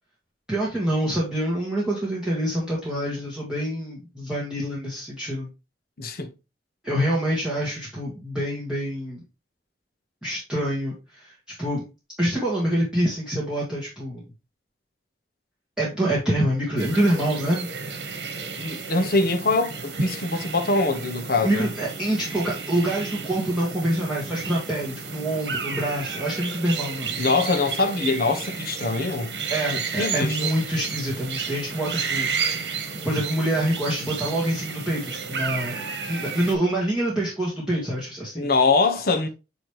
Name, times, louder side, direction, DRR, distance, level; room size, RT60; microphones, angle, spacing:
voice 1, 0.5-5.5 6.8-9.2 10.2-11.8 12.2-14.2 15.8-17.7 21.4-27.2 29.5-32.7 33.0-38.5, right 1 dB, 5° right, 1.8 m, -26 dB
voice 2, 6.0-6.3 18.6-21.7 27.2-29.4 29.7-30.4 38.4-39.3, left 3 dB, 60° left, 1.0 m, -23 dB
sound 1, 16.8-36.5, right 5 dB, 75° right, 1.3 m, -32 dB
8.9 x 3.2 x 3.3 m
head